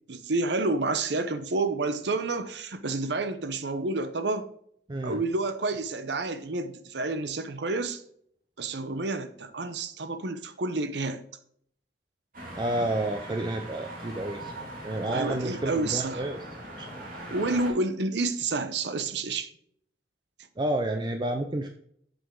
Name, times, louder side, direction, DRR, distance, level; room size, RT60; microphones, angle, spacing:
voice 1, 0.1-4.5 5.0-8.0 8.6-11.2 15.1-16.2 17.3-19.5, right 3 dB, 75° right, 0.8 m, -29 dB
voice 2, 4.9-5.2 12.5-14.5 14.8-16.4 16.9-17.0 20.6-21.7, right 1 dB, 25° right, 0.5 m, -30 dB
sound 1, 12.3-17.7, right 1 dB, 50° right, 2.4 m, -41 dB
7.9 x 5.2 x 3.7 m
head